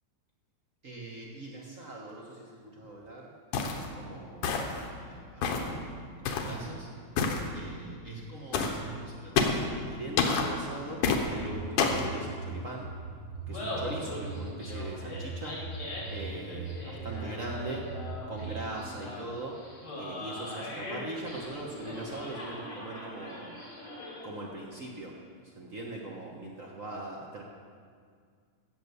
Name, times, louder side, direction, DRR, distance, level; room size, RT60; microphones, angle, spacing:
voice 1, 0.8-3.3 3.7-5.9 6.2-6.9 7.5-12.9 13.5-15.6 16.1-17.8 18.3-19.6 20.0-23.5 24.2-25.1 25.5-27.4, right 2 dB, 85° right, -1 dB, 0.7 m, -41 dB
sound 1, 3.5-3.9 4.4-4.8 5.4-5.7 6.2-6.5 7.2-7.4 8.5-8.8 9.4-9.7 10.2-10.5 11.0-11.2 11.8-12.1, left 5 dB, 90° left, 2.7 m, -27 dB
sound 2, 11.2-18.6, right 3 dB, 65° right, 1.0 m, -41 dB
Laughter, 13.3-24.4, left 1 dB, 45° left, 4.6 m, -41 dB
16.0 x 8.3 x 6.9 m, 2.1 s
omnidirectional pair, 3.5 m